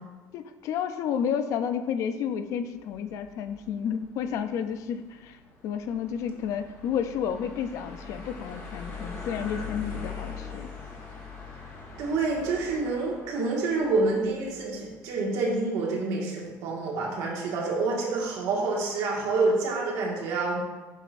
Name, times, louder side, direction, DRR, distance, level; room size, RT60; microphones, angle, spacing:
voice 1, 0.3-5.4 5.6-10.7, left 8 dB, 60° left, 10 dB, 0.4 m, -31 dB
sound 1, 2.8-15.0, left 5 dB, 40° left, 1.5 m, -42 dB
voice 2, 12.0-20.6, right 3 dB, 80° right, -2 dB, 1.6 m, -27 dB
7.4 x 5.2 x 2.5 m, 1.2 s
cardioid pair, 140°, 6 cm